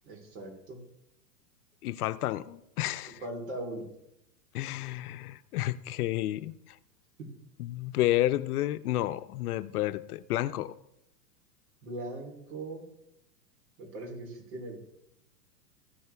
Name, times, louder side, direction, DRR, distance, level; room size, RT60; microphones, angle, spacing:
voice 1, 0.0-0.8 3.2-3.9 7.2-7.3 11.8-12.9 13.8-14.8, right 1 dB, 70° right, 3.6 m, -40 dB
voice 2, 1.8-3.2 4.5-6.8 7.6-10.7, left 14 dB, 65° left, 0.6 m, -31 dB
14.5 x 6.5 x 3.4 m
hypercardioid pair, 130°, 48 cm